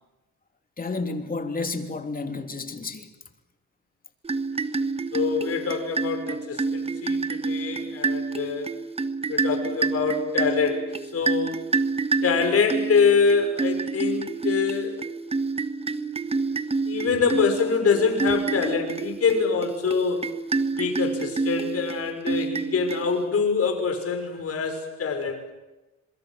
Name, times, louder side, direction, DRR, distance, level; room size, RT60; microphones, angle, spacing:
voice 1, 0.8-3.1, left 3 dB, 30° left, 3.1 m, -31 dB
sound 1, 4.2-23.5, right 4 dB, 20° right, 1.3 m, -28 dB
voice 2, 5.1-8.7 9.3-11.6 12.2-15.0 16.9-20.3 20.7-25.4, left 5 dB, 50° left, 6.1 m, -25 dB
27.0 x 22.5 x 7.7 m
cardioid pair, 90°, 30 cm